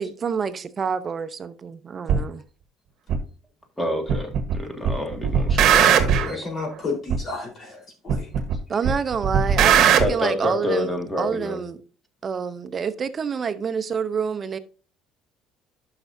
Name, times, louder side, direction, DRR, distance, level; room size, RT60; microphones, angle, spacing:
voice 1, 0.0-2.4 8.7-11.8 12.2-14.6, right 6 dB, 35° right, 0.7 m, -27 dB
sound 1, 2.1-2.2 3.1-3.2 4.1-4.6 4.8-6.3 7.1-7.2 8.1-8.6 8.8-10.1, right 8 dB, 60° right, 1.2 m, -18 dB
voice 2, 3.8-6.5 10.0-11.6, left 1 dB, 10° left, 2.0 m, -28 dB
voice 3, 5.8-8.3, left 3 dB, 40° left, 4.0 m, -32 dB
11.5 x 5.9 x 2.7 m
cardioid pair, 100°, 0 cm